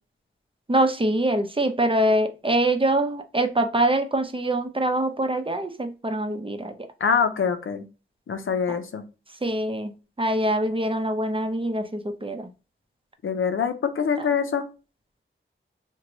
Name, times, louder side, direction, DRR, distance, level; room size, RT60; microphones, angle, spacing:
voice 1, 0.7-6.7 9.4-9.9 10.2-12.5, right 1 dB, 25° right, 7 dB, 0.7 m, -24 dB
voice 2, 7.0-7.9 8.3-9.0 13.2-14.7, left 6 dB, 80° left, 9 dB, 0.5 m, -24 dB
2.9 x 2.2 x 3.9 m, 0.32 s
cardioid pair, 40°, 21 cm